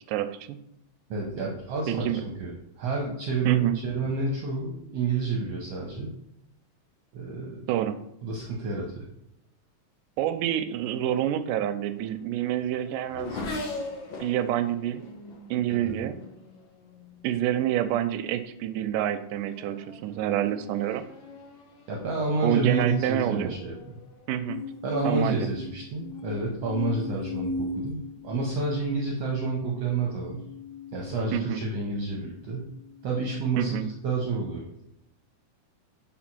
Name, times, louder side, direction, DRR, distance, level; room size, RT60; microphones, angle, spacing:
voice 1, 0.1-0.6 1.9-2.3 3.5-3.8 7.7-8.0 10.2-13.4 14.2-15.0 15.5-16.2 17.2-21.0 22.4-23.5 24.3-24.6 25.0-25.5 31.3-31.6 33.6-33.9, right 11 dB, 85° right, 11 dB, 2.1 m, -27 dB
voice 2, 1.1-6.1 7.1-7.7 8.2-9.0 15.7-15.9 21.9-23.7 24.8-30.4 30.9-32.7 33.0-34.7, right 3 dB, 70° right, -1 dB, 1.6 m, -29 dB
Race car auto racing / Accelerating revving vroom, 11.5-17.3 18.2-18.5 19.0-24.9, left 2 dB, 55° left, 1.4 m, -42 dB
sound 1, 24.5-31.9 32.5-33.0, left 3 dB, 85° left, 1.5 m, -38 dB
5.1 x 4.4 x 5.9 m, 0.82 s
omnidirectional pair, 3.6 m